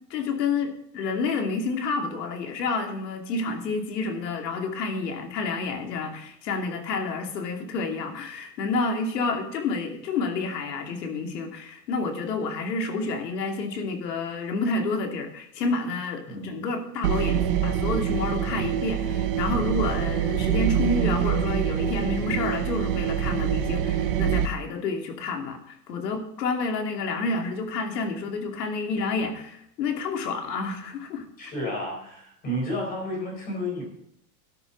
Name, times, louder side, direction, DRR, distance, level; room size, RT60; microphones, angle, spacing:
voice 1, 0.1-31.2, left 3 dB, 75° left, 4 dB, 2.7 m, -29 dB
voice 2, 16.3-16.7 31.4-33.8, left 1 dB, 20° left, 0 dB, 4.1 m, -31 dB
sound 1, 17.0-24.5, right 9 dB, 35° right, 0.5 m, -25 dB
12.5 x 10.5 x 4.0 m, 0.75 s
supercardioid pair, 180°, 49 cm